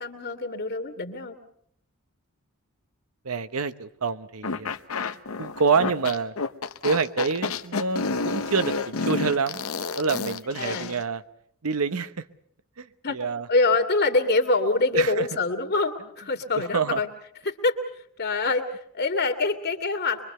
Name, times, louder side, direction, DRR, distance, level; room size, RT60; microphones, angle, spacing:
voice 1, 0.0-1.4 5.2-5.4 10.6-10.9 13.0-13.2 13.5-17.1 17.4-17.8 18.2-20.2, left 3 dB, 50° left, 2.3 m, -25 dB
voice 2, 3.2-4.7 5.4-6.3 6.8-9.6 10.0-11.2 11.6-12.2 12.8-13.5 14.9-15.3 16.6-17.0, right 5 dB, 85° right, 0.9 m, -27 dB
sound 1, 4.4-11.0, left 4 dB, 75° left, 0.9 m, -30 dB
24.0 x 23.5 x 6.7 m
head